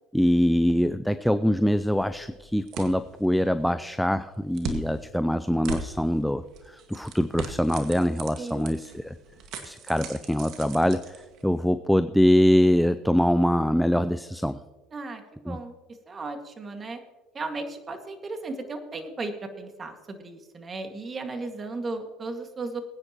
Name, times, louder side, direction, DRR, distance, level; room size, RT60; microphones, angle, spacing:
voice 1, 0.1-9.1 9.6-11.1 11.4-14.6 15.5-15.6, equal, ahead, 12 dB, 0.5 m, -23 dB
sound 1, 1.4-11.7, right 4 dB, 60° right, 1.9 m, -41 dB
voice 2, 8.4-8.7 14.9-15.7 16.1-17.0 17.3-22.8, right 3 dB, 30° right, 5 dB, 2.0 m, -35 dB
21.5 x 9.8 x 3.0 m, 1.2 s
hypercardioid pair, 80°, 0 cm